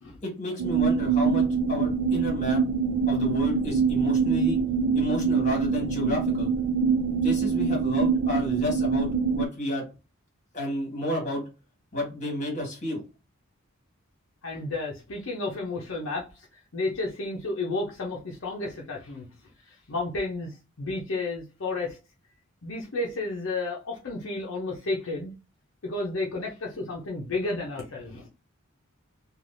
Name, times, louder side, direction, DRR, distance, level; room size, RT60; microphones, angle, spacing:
voice 1, 0.2-2.6 3.1-4.6 4.9-6.5 7.2-9.8 10.5-11.4 11.9-13.0, left 1 dB, 35° left, 1.6 m, -31 dB
sound 1, 0.6-9.5, right 5 dB, 80° right, 0.4 m, -24 dB
voice 2, 14.4-19.3 19.6-22.0 22.6-25.3 25.8-28.3, left 2 dB, 65° left, 0.7 m, -32 dB
3.3 x 2.4 x 2.6 m
head